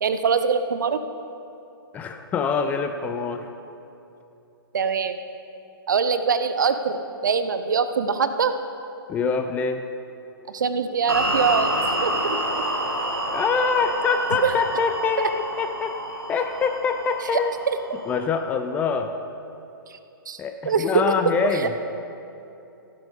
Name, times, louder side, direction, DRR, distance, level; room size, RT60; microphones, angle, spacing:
voice 1, 0.0-1.0 4.7-5.2 5.9-8.5 10.5-11.7 12.0-12.4 14.4-14.5 17.7-17.8 19.9-20.0 20.3-20.4 20.7-20.9 21.3-21.7, right 5 dB, 55° right, 10 dB, 0.8 m, -23 dB
voice 2, 1.9-3.5 9.1-9.8 13.3-16.0 16.3-17.5 18.1-19.1 20.4-21.7, left 5 dB, 10° left, 7 dB, 0.5 m, -24 dB
sound 1, 11.1-18.3, right 1 dB, 80° right, 2.1 m, -28 dB
14.0 x 11.5 x 5.1 m, 2.8 s
figure-of-eight pair, 120°, 12 cm